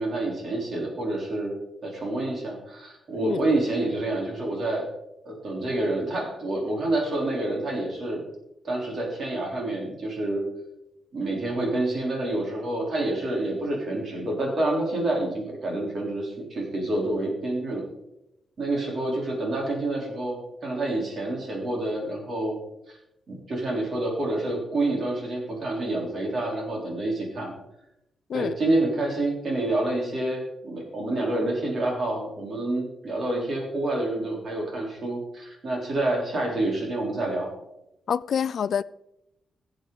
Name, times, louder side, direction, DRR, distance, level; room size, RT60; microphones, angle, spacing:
voice 1, 0.0-1.5 1.8-4.8 5.3-8.2 8.6-10.4 11.1-17.8 18.6-22.6 22.9-23.0 23.3-27.5 28.3-37.5, right 2 dB, 45° right, 3.8 m, -28 dB
voice 2, 38.1-38.8, left 7 dB, 60° left, 0.3 m, -26 dB
18.0 x 7.7 x 4.0 m
wide cardioid pair, 160°, 0 cm